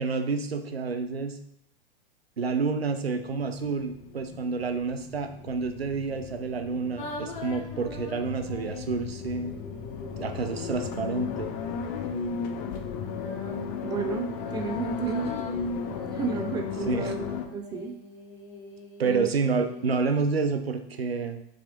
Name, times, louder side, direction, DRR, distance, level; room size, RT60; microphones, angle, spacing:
voice 1, 0.0-1.4 2.4-9.5 10.2-11.5 16.9-17.1 19.0-21.4, right 4 dB, 75° right, 7 dB, 0.7 m, -29 dB
sound 1, 3.3-17.5, left 6 dB, 35° left, 0.8 m, -35 dB
sound 2, 7.0-11.5 13.0-20.0, left 3 dB, 55° left, 1.5 m, -43 dB
voice 2, 13.8-15.3 16.1-18.0 19.0-19.3, right 5 dB, 15° right, 6 dB, 0.4 m, -32 dB
6.3 x 4.8 x 3.8 m, 0.74 s
figure-of-eight pair, 95°, 30 cm